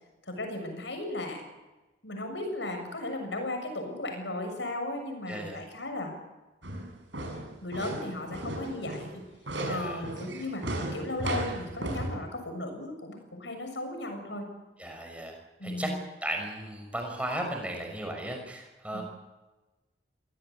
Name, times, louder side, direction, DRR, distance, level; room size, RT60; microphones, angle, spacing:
voice 1, 0.3-1.4 2.0-6.1 7.3-9.2 9.7-10.6 10.9-14.5 15.6-16.0 18.9-19.0, left 1 dB, 80° left, 5 dB, 7.2 m, -36 dB
voice 2, 5.3-5.6 9.6-10.0 14.8-15.3 15.6-15.9 16.2-19.0, right 1 dB, 5° right, 2 dB, 5.9 m, -35 dB
sound 1, 6.6-12.1, right 1 dB, 85° right, 6.2 m, -35 dB
24.5 x 18.0 x 8.6 m, 1.1 s
head